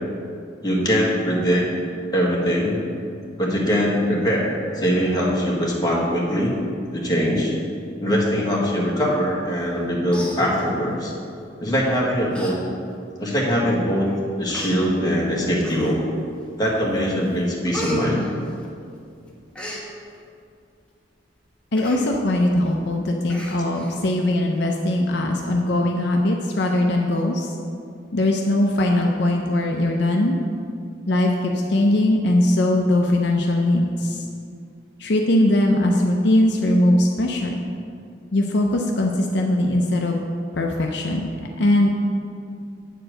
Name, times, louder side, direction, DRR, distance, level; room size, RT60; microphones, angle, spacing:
voice 1, 0.6-1.7 2.1-2.8 3.4-6.5 6.9-7.5 8.0-11.1 11.6-12.5 13.2-14.1 14.4-16.0 16.6-18.2, equal, 25° left, -4 dB, 1.7 m, -22 dB
Human voice, 9.6-9.8 10.1-11.0 11.7-11.9 12.3-12.5 12.9-13.0 13.8-13.9 14.5-14.7 15.6-16.2 16.6-17.0 17.3-19.0 19.3-19.8 21.7-22.0 22.4-22.5 22.8-22.9 23.3-23.9 24.3-24.4, equal, 5° left, 1.3 m, -34 dB
voice 2, 21.7-27.5 28.1-30.4 31.1-34.2 35.0-37.6 38.3-40.2 40.5-41.3 41.6-41.9, left 1 dB, 70° left, 1 dB, 0.7 m, -20 dB
9.0 x 4.5 x 6.5 m, 2.4 s
head